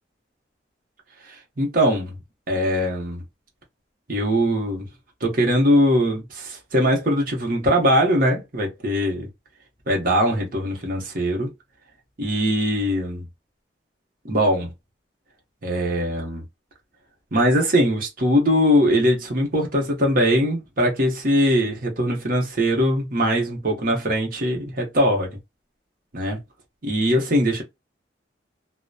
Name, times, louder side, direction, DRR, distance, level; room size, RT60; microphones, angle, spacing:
voice 1, 1.3-2.1 2.5-3.2 4.1-4.9 5.2-9.3 9.9-11.5 12.2-13.2 14.2-14.7 15.6-16.4 17.3-25.4 26.1-26.4 26.8-27.6, equal, 50° right, 0.9 m, -21 dB
2.8 x 2.1 x 2.2 m
head